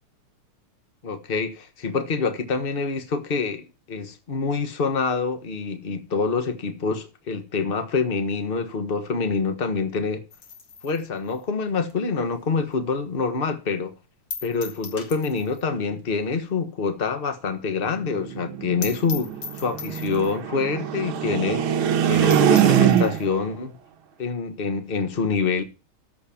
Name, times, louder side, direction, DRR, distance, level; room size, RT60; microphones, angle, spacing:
voice 1, 1.0-10.2 10.8-13.9 14.4-23.7 24.2-25.6, left 4 dB, 30° left, 1.3 m, -26 dB
sound 1, 10.3-12.9 13.3-13.4 13.7-13.8 14.3-15.7 16.0-16.1 16.4-16.5 16.9-17.0 17.2-17.3 17.6-17.7 18.0-18.1 18.4-18.5 18.8-20.5 21.1-21.2 21.6-21.7 22.0-22.1 22.3-23.3, left 5 dB, 55° left, 2.5 m, -39 dB
sound 2, 17.9-23.4, right 9 dB, 75° right, 1.8 m, -22 dB
13.5 x 5.4 x 7.0 m
omnidirectional pair, 2.4 m